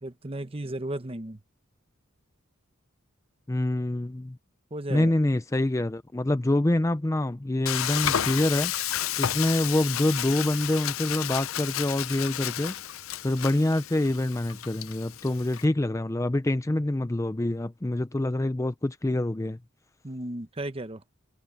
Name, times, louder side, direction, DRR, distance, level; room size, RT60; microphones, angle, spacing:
voice 1, 0.0-1.4 4.7-5.1 20.0-21.0, right 1 dB, 25° right, 1.0 m, -34 dB
voice 2, 3.5-4.4 4.9-8.7 9.2-12.7 13.2-19.6, left 1 dB, 15° left, 0.5 m, -26 dB
Frying (food), 7.7-15.7, left 11 dB, 75° left, 0.6 m, -32 dB
head